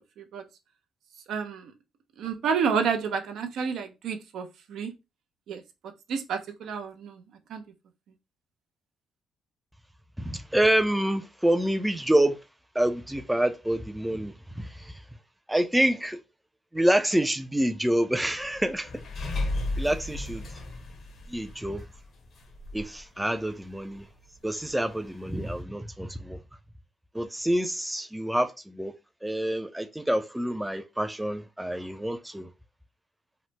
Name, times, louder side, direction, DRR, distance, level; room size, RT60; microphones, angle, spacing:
voice 1, 1.3-1.7 2.2-4.9 5.5-5.6 6.1-7.2 7.5-7.6, right 6 dB, 75° right, 0.4 m, -29 dB
voice 2, 10.2-12.4 12.7-15.0 15.5-16.2 16.7-18.9 19.8-20.4 21.3-21.8 22.7-24.1 24.4-26.4 27.1-28.9 29.2-32.5, right 1 dB, 5° right, 0.3 m, -27 dB
sound 1, 18.4-23.0 23.4-23.5 23.8-24.0 24.3-24.4 25.3-25.6, left 2 dB, 60° left, 0.7 m, -34 dB
2.9 x 2.0 x 3.1 m
cardioid pair, 90°, 0 cm